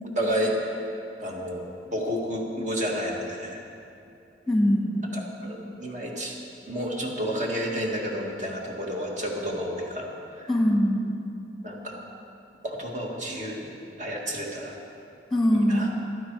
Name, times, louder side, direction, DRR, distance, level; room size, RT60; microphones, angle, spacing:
voice 1, 0.0-0.8 1.2-3.6 5.1-6.4 6.7-10.5 11.6-12.0 12.6-14.8 15.5-15.9, equal, 45° right, -1 dB, 1.9 m, -31 dB
voice 2, 4.5-5.1 10.5-11.1 15.3-15.9, equal, ahead, 0 dB, 1.6 m, -22 dB
15.0 x 12.0 x 4.7 m, 2.6 s
head